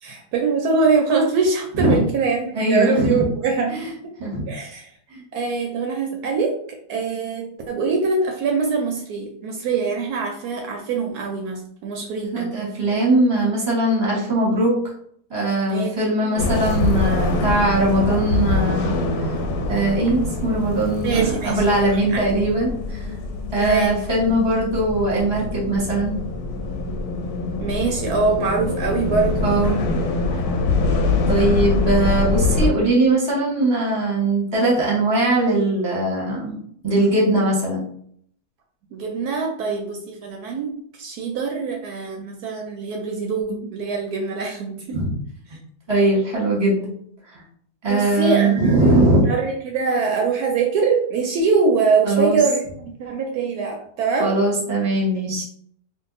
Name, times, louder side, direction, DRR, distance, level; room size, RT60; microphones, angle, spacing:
voice 1, 0.0-3.8 4.5-4.9 5.3-12.5 15.7-15.9 21.0-22.3 23.5-24.0 27.6-29.4 38.9-45.0 47.9-54.3, right 4 dB, 75° right, 2 dB, 1.0 m, -23 dB
voice 2, 2.5-3.3 3.7-3.8 4.2-4.4 5.1-5.2 12.3-14.8 15.3-19.0 19.7-23.0 23.5-26.2 29.4-29.8 31.3-36.6 36.8-37.8 44.9-45.1 45.9-47.0 47.3-47.4 47.8-49.2 52.0-52.4 54.2-55.4, right 2 dB, 20° right, -4 dB, 0.9 m, -20 dB
sound 1, 16.4-32.7, left 3 dB, 70° left, 1.0 m, -24 dB
2.7 x 2.4 x 3.9 m, 0.64 s
omnidirectional pair, 1.8 m